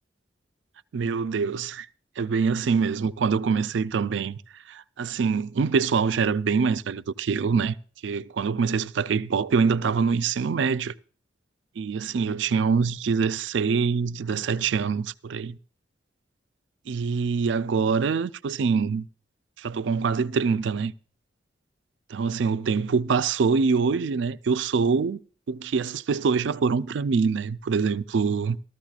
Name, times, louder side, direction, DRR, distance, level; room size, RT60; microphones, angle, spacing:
voice 1, 0.9-1.9 2.2-7.7 8.0-10.9 11.8-15.6 16.9-19.1 19.6-20.9 22.1-25.2 25.5-28.6, right 5 dB, 70° right, 0.4 m, -24 dB
15.0 x 13.5 x 2.4 m
head